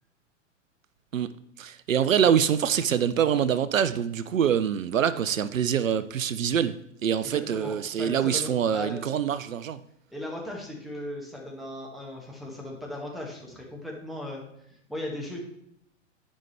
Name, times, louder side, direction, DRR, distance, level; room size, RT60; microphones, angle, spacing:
voice 1, 1.6-6.8 7.0-9.8, right 8 dB, 90° right, 15 dB, 0.5 m, -25 dB
voice 2, 7.2-9.1 10.1-14.4 14.7-15.4, left 1 dB, ahead, -1 dB, 1.8 m, -37 dB
10.5 x 5.5 x 3.3 m, 0.75 s
figure-of-eight pair, 105°, 38 cm